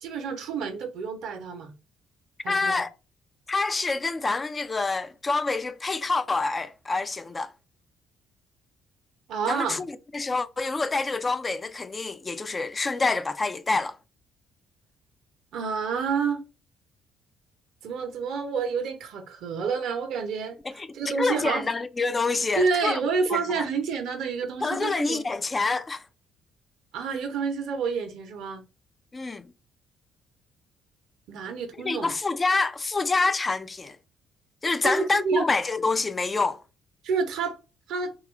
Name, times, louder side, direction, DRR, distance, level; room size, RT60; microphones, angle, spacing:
voice 1, 0.0-1.7 2.4-2.8 9.3-9.8 15.5-16.4 17.8-20.6 20.9-21.7 22.6-25.2 26.9-28.6 31.3-32.1 34.8-35.5 37.0-37.6 37.9-38.1, right 5 dB, 60° right, 0.7 m, -28 dB
voice 2, 2.5-2.9 3.5-7.5 9.5-14.0 20.6-20.9 21.2-23.0 23.3-23.6 24.6-26.0 29.1-29.5 31.8-34.0 34.6-36.6, left 3 dB, 30° left, 0.4 m, -27 dB
2.9 x 2.3 x 3.0 m
figure-of-eight pair, 45°, 0 cm